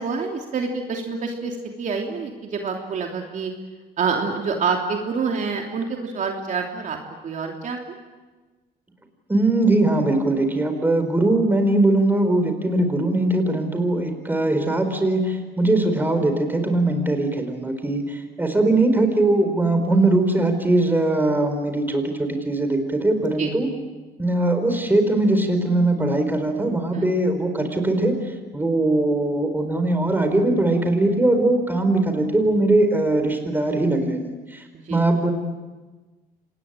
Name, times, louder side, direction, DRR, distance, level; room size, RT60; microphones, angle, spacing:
voice 1, 0.0-3.5 4.0-7.0 7.2-7.8 23.4-23.5 26.9-27.1 34.9-35.0, right 5 dB, 50° right, 2 dB, 3.0 m, -27 dB
voice 2, 9.3-23.7 24.2-28.1 28.5-35.3, right 2 dB, 10° right, 6 dB, 4.6 m, -21 dB
26.5 x 20.0 x 8.9 m, 1.3 s
cardioid pair, 110°, 17 cm